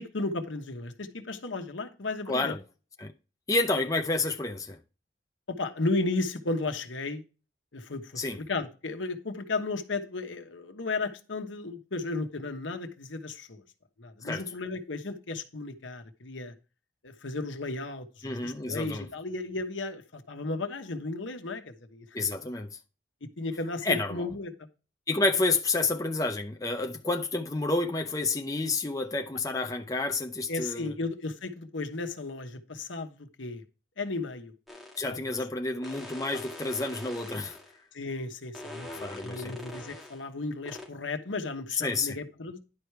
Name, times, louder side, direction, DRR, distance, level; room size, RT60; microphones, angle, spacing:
voice 1, 0.0-2.6 5.5-7.2 7.7-8.1 8.4-13.6 14.0-16.5 17.0-22.0 23.2-24.5 30.5-33.6 34.0-34.5 35.1-35.5 37.9-42.6, left 3 dB, 85° left, 1.2 m, -34 dB
voice 2, 2.3-2.6 3.0-3.1 3.5-4.8 8.2-8.4 14.2-14.4 18.2-19.1 22.1-22.8 23.8-24.3 25.1-30.9 35.0-37.6 38.9-39.6 41.8-42.2, left 3 dB, 20° left, 0.6 m, -29 dB
sound 1, 34.7-35.1 35.8-37.8 38.5-40.2 40.7-40.9, left 1 dB, ahead, 1.7 m, -43 dB
11.0 x 4.8 x 4.6 m
head